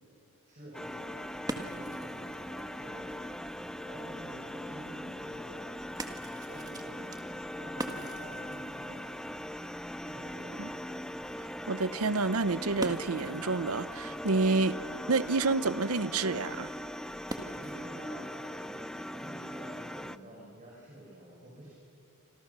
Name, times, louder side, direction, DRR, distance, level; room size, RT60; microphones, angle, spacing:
voice 1, 0.5-1.2 1.5-5.6 6.3-7.2 7.6-9.1 10.0-11.0 17.1-21.7, right 1 dB, 35° right, -3 dB, 5.3 m, -49 dB
sound 1, 0.7-20.2, left 1 dB, 5° left, 0.5 m, -40 dB
sound 2, 0.9-18.0, right 1 dB, 15° right, 1.8 m, -46 dB
voice 2, 11.4-14.8 15.1-16.7, right 3 dB, 70° right, 16 dB, 0.8 m, -29 dB
27.0 x 27.0 x 6.9 m, 2.7 s
head